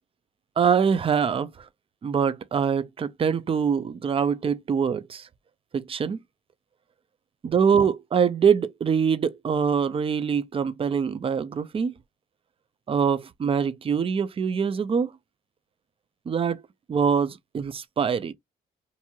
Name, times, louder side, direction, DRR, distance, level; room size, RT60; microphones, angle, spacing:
voice 1, 0.6-1.7 2.0-5.3 5.7-6.2 7.4-11.9 12.9-15.1 16.3-16.6 16.9-18.3, right 6 dB, 30° right, 0.4 m, -24 dB
2.8 x 2.6 x 2.3 m
cardioid pair, 90°, 20 cm